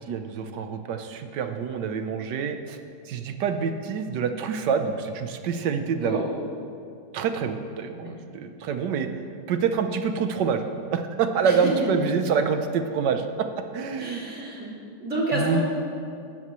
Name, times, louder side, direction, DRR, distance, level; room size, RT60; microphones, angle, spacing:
voice 1, 0.0-2.8 3.1-6.2 7.1-9.1 9.5-10.6 10.9-13.5 13.7-14.3 15.3-15.6, right 6 dB, 80° right, 7 dB, 1.5 m, -26 dB
voice 2, 6.0-6.3 7.9-8.1 11.4-11.5 13.9-14.7 15.0-15.6, right 1 dB, 45° right, -5 dB, 3.2 m, -29 dB
17.0 x 13.5 x 3.1 m, 2.5 s
omnidirectional pair, 1.8 m